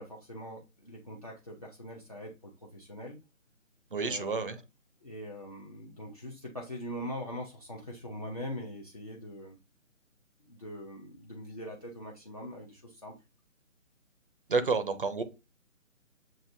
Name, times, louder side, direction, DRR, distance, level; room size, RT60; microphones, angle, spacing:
voice 1, 0.0-3.2 4.0-4.5 5.0-9.6 10.4-13.1, equal, 30° left, -2 dB, 0.6 m, -42 dB
voice 2, 3.9-4.6 14.5-15.2, right 4 dB, 40° right, 11 dB, 0.7 m, -29 dB
7.5 x 2.5 x 2.6 m, 0.27 s
hypercardioid pair, 170°, 40 cm